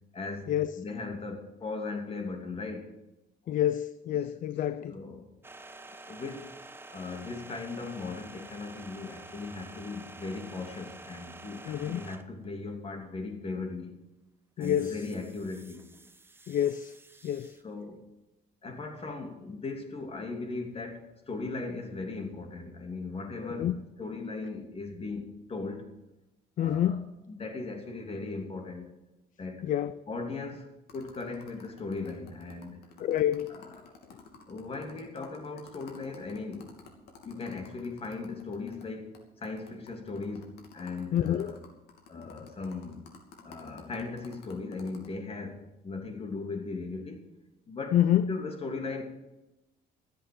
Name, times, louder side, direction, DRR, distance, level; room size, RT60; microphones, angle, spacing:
voice 1, 0.1-2.9 4.9-5.3 6.1-6.5 6.9-14.0 14.6-15.8 17.2-17.3 17.6-18.0 18.6-23.7 24.0-25.9 26.6-27.0 27.3-28.9 29.4-29.7 30.1-32.8 33.5-33.9 34.5-36.8 37.2-41.6 42.1-43.0 43.4-47.2 47.7-48.0 48.3-49.0, left 3 dB, 35° left, 2.8 m, -38 dB
voice 2, 3.5-5.0 11.7-12.0 14.6-15.0 16.5-16.9 17.2-17.6 23.4-23.8 26.6-27.0 29.6-29.9 33.0-33.6 41.1-41.5 42.2-42.4 47.9-48.3, left 11 dB, 50° left, 0.5 m, -28 dB
sound 1, 5.4-12.5 14.6-17.6, right 2 dB, 15° right, 1.0 m, -49 dB
sound 2, 30.9-38.9 39.1-39.2 39.4-45.1, left 5 dB, 75° left, 2.9 m, -52 dB
13.5 x 8.0 x 7.8 m
cardioid pair, 110°, 17 cm